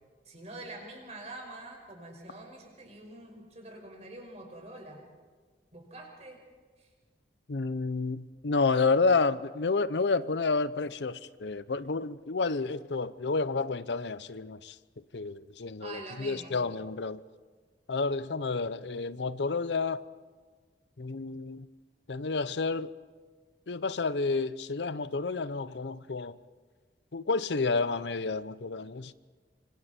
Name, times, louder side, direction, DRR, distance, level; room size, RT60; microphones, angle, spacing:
voice 1, 0.2-5.0 5.7-6.4 6.8-6.9 15.8-16.6, right 2 dB, 40° right, 5.4 m, -45 dB
voice 2, 7.5-14.7 15.1-17.2 17.9-20.0 21.0-21.7 22.1-22.9 23.7-26.4 27.1-29.1, left 4 dB, 80° left, 0.7 m, -30 dB
25.5 x 25.0 x 4.4 m
head